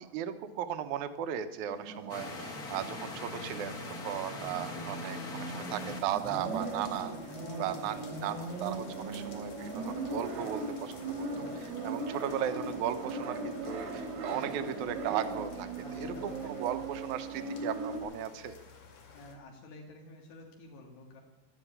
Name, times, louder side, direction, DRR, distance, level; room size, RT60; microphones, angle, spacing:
voice 1, 0.0-7.2 7.6-11.3 11.5-18.6, right 10 dB, 70° right, 10 dB, 2.0 m, -36 dB
sound 1, 1.7-18.0, right 3 dB, 90° right, 4.5 m, -39 dB
sound 2, 2.1-6.0, left 3 dB, 35° left, 1.6 m, -42 dB
sound 3, 5.4-19.4, left 5 dB, 50° left, 3.5 m, -53 dB
voice 2, 15.8-16.7 19.1-21.2, left 1 dB, 85° left, 0 dB, 4.0 m, -50 dB
13.0 x 12.0 x 8.8 m, 1.0 s
omnidirectional pair, 4.5 m